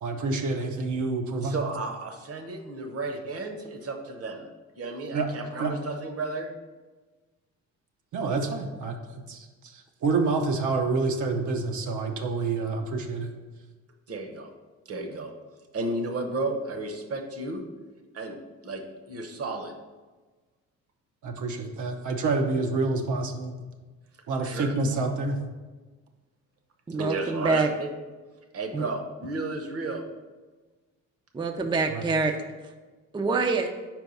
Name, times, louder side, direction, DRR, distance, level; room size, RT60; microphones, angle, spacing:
voice 1, 0.0-1.6 5.1-5.3 5.6-5.7 8.1-13.3 21.2-23.5 24.3-25.4 31.9-32.0, right 3 dB, 75° right, 3 dB, 0.8 m, -28 dB
voice 2, 1.4-4.5 4.7-6.5 14.1-14.5 14.9-15.3 15.7-17.7 18.1-19.7 24.4-24.7 26.9-27.9 28.5-30.0, right 2 dB, 50° right, 5 dB, 0.9 m, -33 dB
voice 3, 26.9-27.7 28.7-28.8 31.3-32.3 33.1-33.7, right 3 dB, 15° right, 5 dB, 0.4 m, -25 dB
4.6 x 4.5 x 5.3 m, 1.3 s
cardioid pair, 90°, 30 cm